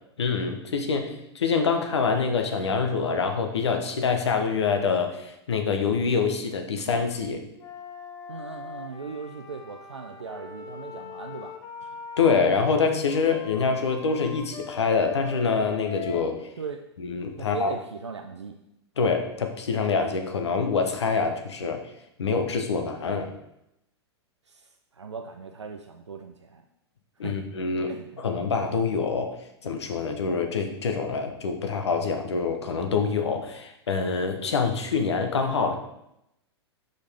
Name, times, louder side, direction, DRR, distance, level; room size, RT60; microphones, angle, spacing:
voice 1, 0.2-7.4 12.2-16.5 17.0-17.7 19.0-21.9 22.2-23.3 27.2-27.9 28.2-29.3 29.6-35.8, left 5 dB, 75° left, 5 dB, 1.0 m, -25 dB
Wind instrument woodwind instrument, 7.6-12.4 13.1-16.2, left 5 dB, 25° left, 0.8 m, -41 dB
voice 2, 8.3-11.6 16.6-16.8 17.4-18.6 24.5-26.6 27.2-27.4 27.8-28.3, right 5 dB, 90° right, 4 dB, 0.5 m, -38 dB
6.3 x 5.2 x 3.5 m, 0.83 s
figure-of-eight pair, 105°, 14 cm